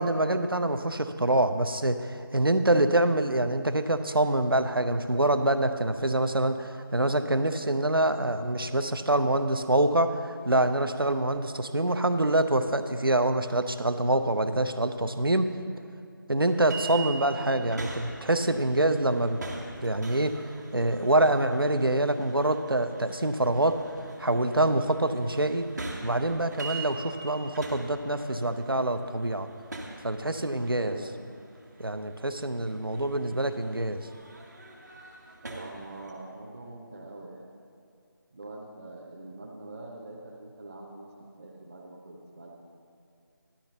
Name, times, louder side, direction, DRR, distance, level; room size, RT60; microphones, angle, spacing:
voice 1, 0.0-15.5 16.3-19.4 19.8-20.4 20.7-23.8 24.2-25.7 26.0-29.5 30.0-31.0 31.8-34.1, right 1 dB, 85° right, 9 dB, 0.8 m, -25 dB
sound 1, 16.4-36.1, right 3 dB, 50° right, 1.6 m, -43 dB
voice 2, 30.7-31.2 35.4-37.5 38.3-42.5, right 2 dB, 30° right, -4 dB, 1.0 m, -44 dB
13.0 x 11.5 x 4.0 m, 2.5 s
figure-of-eight pair, 165°, 12 cm